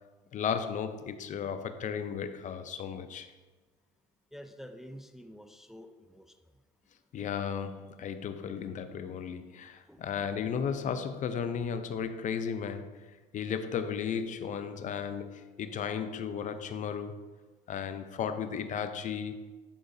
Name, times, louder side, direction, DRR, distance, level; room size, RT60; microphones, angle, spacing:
voice 1, 0.3-3.3 7.1-13.0 13.3-17.2 17.7-19.4, left 7 dB, 50° left, 0.5 m, -35 dB
voice 2, 4.3-6.2 9.9-10.0, equal, ahead, 0.4 m, -48 dB
10.5 x 4.8 x 2.7 m
cardioid pair, 105°, 16 cm